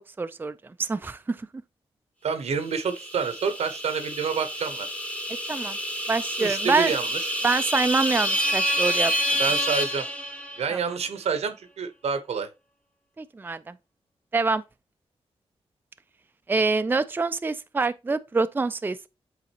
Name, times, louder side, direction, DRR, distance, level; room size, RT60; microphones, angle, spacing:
voice 1, 0.2-0.5 0.8-1.4 5.5-5.8 6.1-6.9 7.4-9.1 10.7-10.8 13.2-13.7 14.3-14.6 16.5-19.1, right 3 dB, 20° right, 0.4 m, -25 dB
voice 2, 2.2-4.9 6.4-7.3 9.4-10.1 10.6-12.5, right 6 dB, 85° right, 0.9 m, -28 dB
sound 1, 2.8-10.8, equal, 10° left, 1.1 m, -28 dB
8.3 x 3.9 x 2.9 m
cardioid pair, 80°, 11 cm